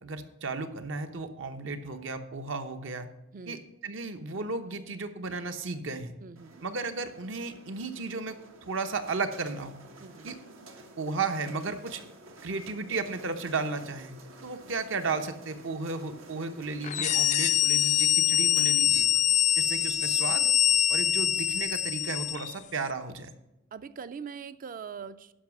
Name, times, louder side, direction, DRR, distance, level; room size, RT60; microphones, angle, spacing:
voice 1, 0.0-3.1 3.5-6.1 6.6-8.4 8.7-9.8 10.2-10.4 11.0-12.0 12.4-14.1 14.4-19.1 19.6-20.5 20.9-23.3, right 4 dB, 70° right, 8 dB, 0.9 m, -34 dB
voice 2, 3.3-3.7 6.2-6.6 10.0-10.3 23.7-25.3, right 6 dB, 45° right, 14 dB, 0.4 m, -42 dB
sound 1, 6.4-20.8, right 2 dB, 90° right, 1.4 m, -51 dB
sound 2, 16.8-22.5, left 11 dB, 35° left, 0.3 m, -24 dB
11.5 x 5.6 x 6.0 m, 0.92 s
head